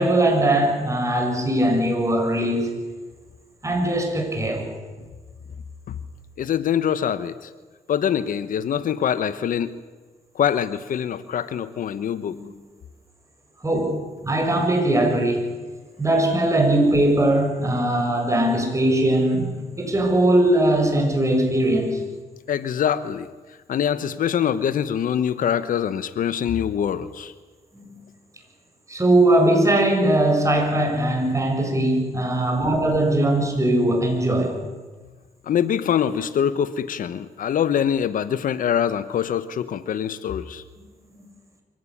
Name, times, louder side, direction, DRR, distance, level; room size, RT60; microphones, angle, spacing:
voice 1, 0.0-2.8 3.6-4.7 12.3-12.4 13.6-13.9 14.2-15.5 16.0-22.0 27.7-28.0 28.9-34.6, right 1 dB, 20° right, 3 dB, 7.4 m, -20 dB
voice 2, 6.4-7.5 7.9-9.8 10.3-12.4 22.5-23.3 23.7-27.3 35.4-40.6, left 9 dB, 70° left, 14 dB, 1.1 m, -24 dB
23.5 x 17.5 x 10.0 m, 1.3 s
cardioid pair, 70°, 15 cm